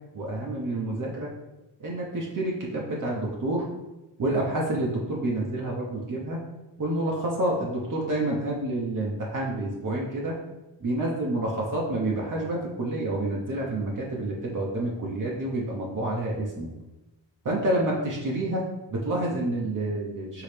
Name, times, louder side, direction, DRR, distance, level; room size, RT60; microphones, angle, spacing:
voice 1, 0.1-1.3 1.8-3.7 4.2-6.4 6.8-10.3 10.8-16.7 17.4-18.6 18.9-20.4, right 1 dB, 45° right, -3 dB, 1.0 m, -28 dB
4.7 x 3.1 x 3.4 m, 0.99 s
cardioid pair, 75°, 45 cm